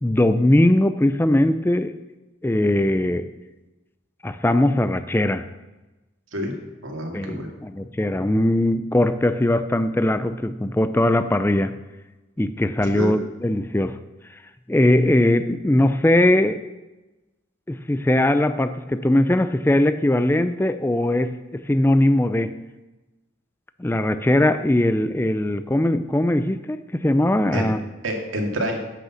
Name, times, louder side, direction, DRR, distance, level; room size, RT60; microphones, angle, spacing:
voice 1, 0.0-1.9 2.4-3.3 4.2-5.4 7.1-11.7 12.4-14.0 14.7-16.6 17.7-22.5 23.8-27.8, left 1 dB, 10° left, 11 dB, 0.4 m, -20 dB
voice 2, 6.8-7.5 12.9-13.1 27.5-27.7 28.0-28.8, equal, 90° right, 2 dB, 2.1 m, -27 dB
10.0 x 6.5 x 7.2 m, 1.1 s
head